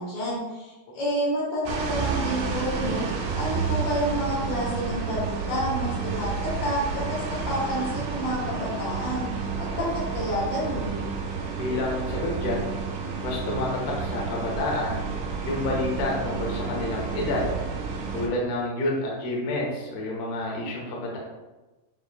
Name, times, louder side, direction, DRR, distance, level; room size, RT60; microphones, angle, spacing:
voice 1, 0.0-3.1 3.4-9.5 9.7-11.1, equal, 85° left, -7 dB, 3.5 m, -29 dB
sound 1, 1.7-18.3, right 5 dB, 80° right, 2.3 m, -30 dB
voice 2, 11.6-12.7 13.2-13.7 14.0-15.0 15.4-17.5 18.1-21.2, left 2 dB, 65° left, -3 dB, 1.7 m, -29 dB
6.9 x 3.0 x 2.2 m, 1.1 s
omnidirectional pair, 4.0 m